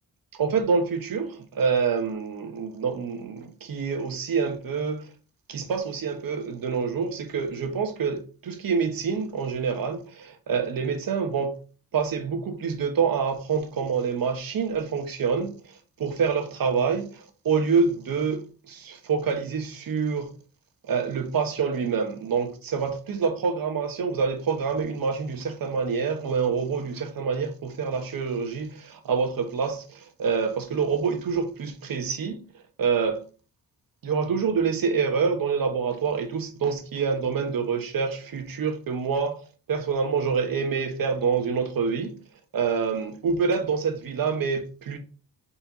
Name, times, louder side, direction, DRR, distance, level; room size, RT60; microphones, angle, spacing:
voice 1, 0.4-5.1 5.5-11.6 11.9-20.3 20.8-32.4 32.8-33.2 34.0-39.4 39.7-42.2 42.5-45.0, right 5 dB, 75° right, 1.4 m, -26 dB
4.4 x 4.4 x 5.5 m
wide cardioid pair, 110°, 35 cm